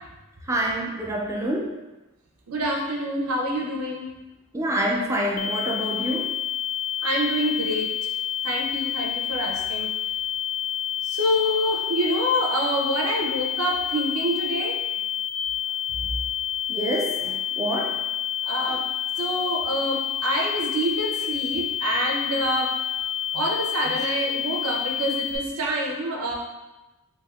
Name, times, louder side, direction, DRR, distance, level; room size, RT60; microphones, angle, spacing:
voice 1, 0.4-1.8 4.5-6.4 16.7-18.0 18.7-18.8 24.0-24.1, right 1 dB, 15° right, -1 dB, 0.3 m, -27 dB
voice 2, 2.5-4.1 7.0-8.1 8.4-9.9 11.0-14.8 18.4-18.8 19.2-22.7 23.3-26.3, right 1 dB, 85° right, 0 dB, 0.6 m, -26 dB
sound 1, 5.4-25.4, left 10 dB, 90° left, 0.3 m, -29 dB
3.4 x 2.7 x 2.3 m, 1.1 s
head